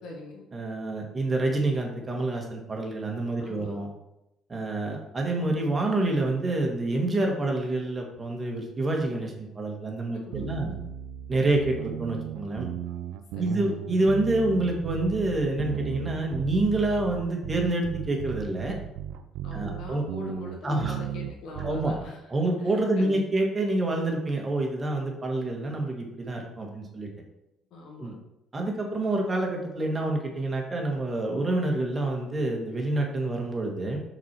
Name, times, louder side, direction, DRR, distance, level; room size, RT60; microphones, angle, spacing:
voice 1, 0.0-0.4 3.4-3.8 10.1-10.8 13.3-13.7 19.4-22.2 23.0-23.2 27.7-28.1, left 2 dB, 75° left, 0 dB, 1.7 m, -41 dB
voice 2, 0.5-3.9 4.5-10.7 11.3-12.7 13.4-18.8 19.5-20.0 20.6-21.0 21.6-21.9 22.3-27.1 28.0-28.1 28.5-34.0, right 2 dB, 30° right, 1 dB, 1.8 m, -27 dB
sound 1, 10.3-22.1, right 10 dB, 80° right, 0.4 m, -36 dB
5.9 x 4.4 x 4.7 m, 0.87 s
supercardioid pair, 75°, 0 cm